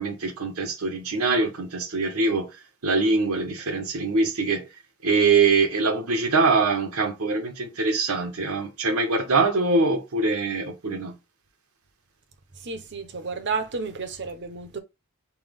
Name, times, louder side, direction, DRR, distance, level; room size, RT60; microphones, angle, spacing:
voice 1, 0.0-2.5 2.8-4.6 5.0-11.1, right 3 dB, 75° right, 1.1 m, -23 dB
voice 2, 12.6-14.8, right 4 dB, 50° right, 0.8 m, -31 dB
5.7 x 2.3 x 3.4 m
head